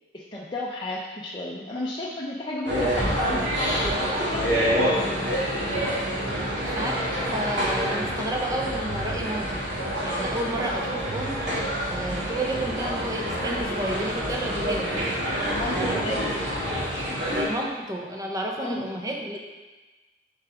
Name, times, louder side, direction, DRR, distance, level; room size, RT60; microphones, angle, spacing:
voice 1, 0.1-4.6 15.3-16.3 18.6-18.8, left 1 dB, 25° left, -4 dB, 0.5 m, -33 dB
sound 1, 2.7-17.5, equal, 80° right, 2.2 m, -27 dB
voice 2, 5.0-5.4 6.6-9.5 10.0-11.4 11.9-14.9 15.6-16.4 17.3-19.4, right 1 dB, 20° right, 0 dB, 0.7 m, -31 dB
7.2 x 4.9 x 3.4 m, 1.2 s
head